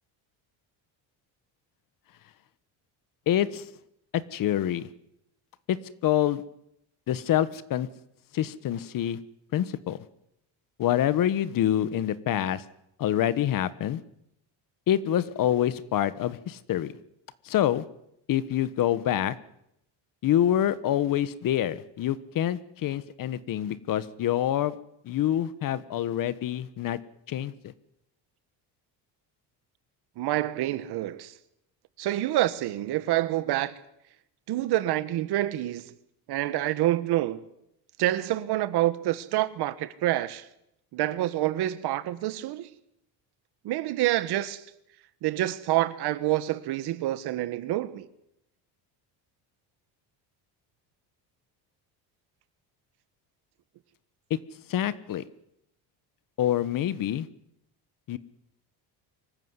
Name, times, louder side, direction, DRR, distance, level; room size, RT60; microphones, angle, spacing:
voice 1, 3.3-3.6 4.3-4.9 5.7-5.8 6.0-6.4 7.1-7.9 8.3-9.2 9.5-10.0 10.8-12.6 13.0-14.0 14.9-16.9 17.4-17.8 18.3-19.3 20.2-24.8 25.0-27.0 27.3-27.5 54.7-55.2 56.4-57.3 58.1-58.2, left 11 dB, 50° left, 1.3 m, -26 dB
voice 2, 30.2-31.3 32.0-33.7 34.5-35.9 36.3-37.4 38.0-40.5 40.9-42.7 43.6-44.6 45.2-48.1, right 15 dB, 65° right, 1.6 m, -27 dB
25.0 x 14.5 x 9.7 m
cardioid pair, 140°, 42 cm